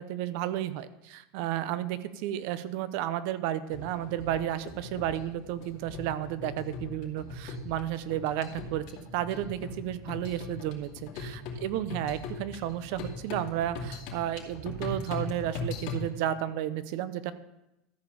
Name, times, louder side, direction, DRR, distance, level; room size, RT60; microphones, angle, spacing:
voice 1, 0.0-8.8 9.1-17.3, right 12 dB, 65° right, 14 dB, 0.7 m, -32 dB
sound 1, 3.7-16.1, left 3 dB, 65° left, 2.4 m, -40 dB
13.5 x 5.1 x 6.9 m, 0.92 s
supercardioid pair, 130°, 0 cm